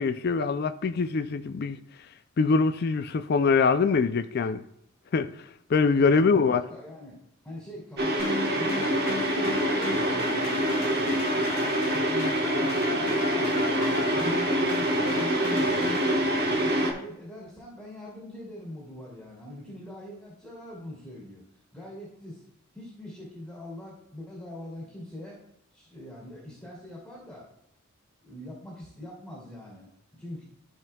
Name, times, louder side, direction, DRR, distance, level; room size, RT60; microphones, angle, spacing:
voice 1, 0.0-1.8 2.4-4.6 5.1-5.3 5.7-6.6, left 4 dB, 50° left, 0.4 m, -23 dB
voice 2, 5.9-7.2 7.4-13.6 14.1-15.8 16.6-21.4 21.7-22.4 22.7-25.4 25.7-27.5 28.2-30.4, left 1 dB, 5° left, 2.6 m, -43 dB
sound 1, 8.0-16.9, right 1 dB, 50° right, 1.3 m, -26 dB
sound 2, 8.2-16.2, left 3 dB, 90° left, 1.6 m, -35 dB
13.5 x 5.3 x 2.3 m
head